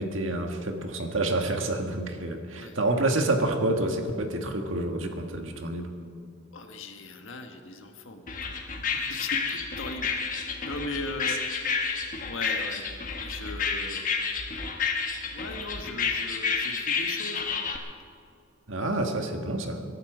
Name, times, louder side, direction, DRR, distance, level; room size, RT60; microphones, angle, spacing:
voice 1, 0.0-5.9 11.3-11.4 18.7-19.8, right 2 dB, 80° right, 5 dB, 1.6 m, -28 dB
voice 2, 6.5-11.4 12.3-12.8 13.2-14.5 15.3-17.5, left 2 dB, 80° left, 5 dB, 1.5 m, -39 dB
sound 1, 8.3-17.8, left 5 dB, 40° left, 1.3 m, -30 dB
22.0 x 11.5 x 5.0 m, 2.5 s
head